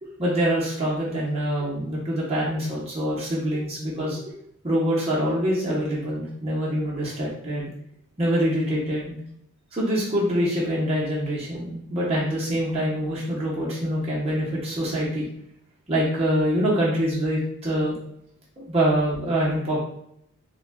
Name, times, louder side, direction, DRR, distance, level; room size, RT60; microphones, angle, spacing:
voice 1, 0.0-4.2 4.6-7.7 8.2-9.2 9.7-15.2 15.9-18.0 18.7-19.8, equal, 30° right, -6 dB, 0.9 m, -25 dB
3.8 x 2.3 x 2.2 m, 0.69 s
head